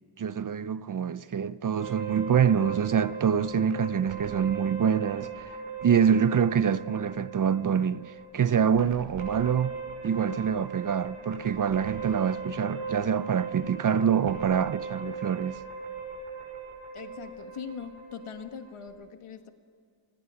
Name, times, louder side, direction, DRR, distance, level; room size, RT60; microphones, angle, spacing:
voice 1, 0.2-9.7 10.0-15.6, right 7 dB, 40° right, 0.5 m, -26 dB
sound 1, 1.8-18.9, right 5 dB, 80° right, 6.2 m, -39 dB
voice 2, 16.9-19.5, left 7 dB, 85° left, 1.7 m, -41 dB
30.0 x 21.0 x 5.7 m
wide cardioid pair, 180°, 49 cm